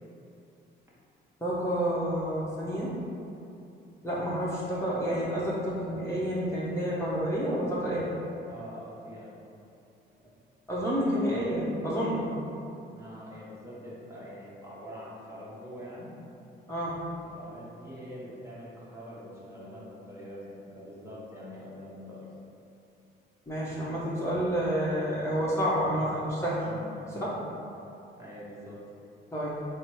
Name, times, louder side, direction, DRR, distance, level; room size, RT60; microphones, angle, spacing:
voice 1, 1.4-2.9 4.0-8.0 10.7-12.2 16.7-17.0 23.5-26.7 27.1-27.3 29.3-29.5, equal, 15° left, -9 dB, 0.9 m, -29 dB
voice 2, 8.5-9.3 12.9-16.1 17.0-22.3 26.6-27.5 28.2-28.8, equal, 15° right, -8 dB, 1.1 m, -44 dB
4.2 x 2.0 x 4.5 m, 2.7 s
cardioid pair, 90°, 20 cm